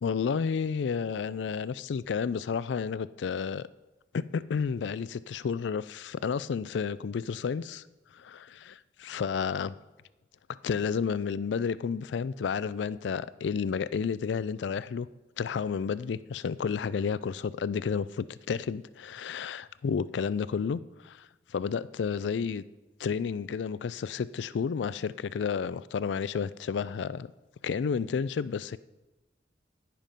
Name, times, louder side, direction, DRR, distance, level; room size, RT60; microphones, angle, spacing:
voice 1, 0.0-3.6 4.1-7.8 8.1-8.7 9.0-9.8 10.6-15.1 15.4-22.6 23.0-27.3 27.6-28.8, left 6 dB, 85° left, 17 dB, 0.4 m, -31 dB
16.5 x 5.9 x 5.2 m, 1.1 s
head